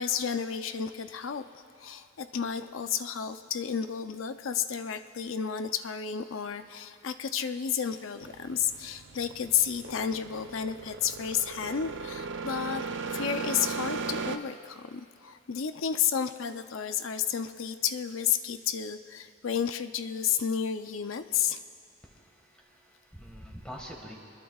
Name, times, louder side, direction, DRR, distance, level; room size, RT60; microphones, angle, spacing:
voice 1, 0.0-1.5 1.8-12.8 13.1-21.6, left 8 dB, 75° left, 9 dB, 0.6 m, -31 dB
sound 1, 8.2-14.4, right 4 dB, 65° right, 0.6 m, -37 dB
voice 2, 22.0-24.2, equal, 5° left, -2 dB, 1.7 m, -46 dB
24.0 x 21.0 x 2.4 m, 2.6 s
head